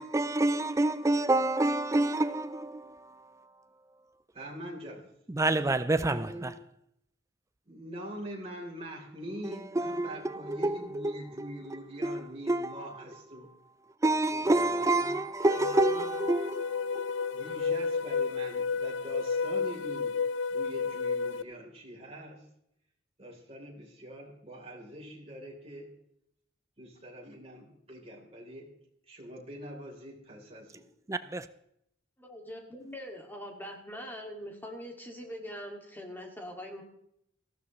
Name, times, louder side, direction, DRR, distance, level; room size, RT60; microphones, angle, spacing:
voice 1, 0.0-3.5 5.3-6.5 9.7-12.8 14.0-17.6 31.1-31.5, right 2 dB, 15° right, 0.4 m, -29 dB
voice 2, 4.3-5.0 6.1-6.5 7.7-13.5 14.3-15.1 15.6-16.0 17.3-20.1 20.5-22.5 23.2-25.9 26.8-28.7 29.1-30.8, equal, 30° right, 3.7 m, -44 dB
sound 1, 15.4-21.4, left 5 dB, 75° left, 0.5 m, -31 dB
voice 3, 32.2-36.8, equal, 10° left, 2.3 m, -42 dB
18.5 x 15.0 x 3.2 m
head